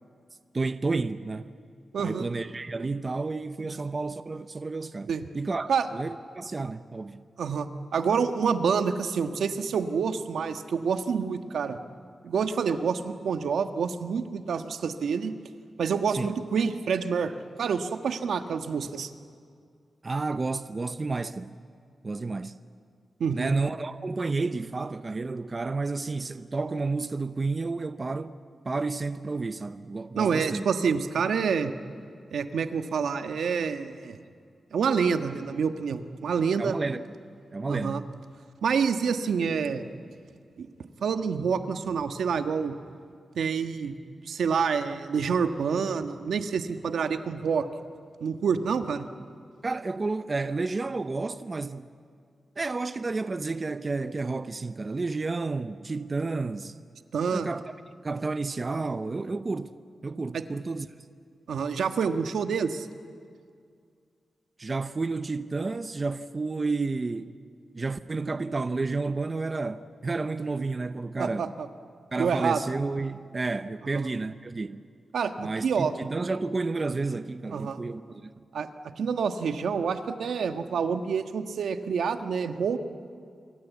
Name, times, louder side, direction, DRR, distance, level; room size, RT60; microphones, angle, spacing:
voice 1, 0.5-1.5 2.0-7.2 16.1-16.3 20.0-21.5 22.0-22.6 23.3-28.4 28.6-30.6 36.6-37.1 37.5-38.1 49.6-51.9 52.6-56.7 57.3-57.6 58.0-59.7 60.0-60.9 64.6-67.3 67.7-71.5 72.1-74.8 75.4-78.4, right 3 dB, 30° right, 0.7 m, -31 dB
voice 2, 1.9-2.2 5.1-5.3 5.7-5.9 7.4-11.8 12.2-15.3 15.8-19.1 23.2-23.6 30.2-31.7 32.3-34.2 34.7-36.8 37.7-38.0 38.6-39.8 40.6-40.7 41.0-42.7 43.3-43.9 44.3-47.7 48.2-49.1 57.1-57.5 61.5-62.9 71.2-71.7 72.2-72.6 75.1-75.9 77.5-77.8 78.5-78.7 79.0-82.8, right 6 dB, 85° right, 1.4 m, -27 dB
27.0 x 24.0 x 8.3 m
wide cardioid pair, 135°, 0 cm